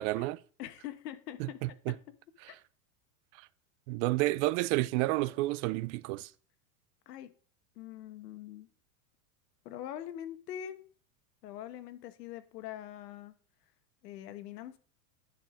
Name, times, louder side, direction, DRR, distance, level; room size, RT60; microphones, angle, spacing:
voice 1, 0.0-0.4 1.4-1.9 2.4-2.5 3.9-6.3, right 19 dB, 50° right, 0.5 m, -30 dB
voice 2, 0.6-2.0 2.5-2.6 7.1-7.3 7.8-8.7 9.6-10.8 11.4-13.3 14.0-14.8, left 11 dB, 85° left, 1.3 m, -43 dB
12.0 x 4.8 x 5.1 m
supercardioid pair, 135°, 47 cm